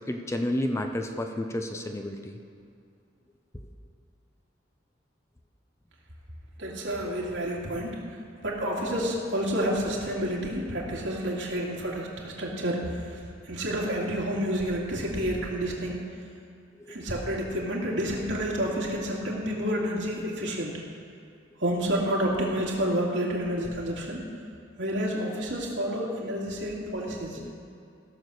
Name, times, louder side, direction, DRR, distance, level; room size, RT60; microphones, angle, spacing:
voice 1, 0.1-2.4 16.8-17.0 27.4-27.6, left 1 dB, 15° left, 4 dB, 0.6 m, -31 dB
voice 2, 6.6-8.0 8.4-13.2 13.5-16.1 16.9-20.8 21.6-24.2 24.8-27.4, equal, 80° right, -3 dB, 2.5 m, -29 dB
16.0 x 7.0 x 6.4 m, 2.5 s
head